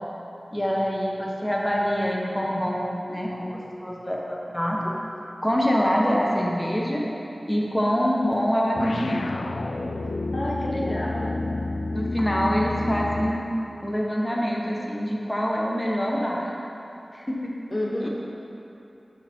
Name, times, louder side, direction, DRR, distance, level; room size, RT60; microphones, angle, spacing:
voice 1, 0.5-4.8 5.4-7.0 7.5-9.3 10.7-11.0 11.9-13.5 13.8-16.5 17.1-17.5 18.0-18.1, equal, 15° left, -2 dB, 1.0 m, -25 dB
sound 1, 8.7-13.5, left 2 dB, 80° left, 0.3 m, -30 dB
voice 2, 10.3-11.3 17.7-18.1, left 1 dB, 45° left, -3 dB, 0.9 m, -29 dB
6.5 x 6.2 x 4.4 m, 2.9 s
wide cardioid pair, 45°, 0 cm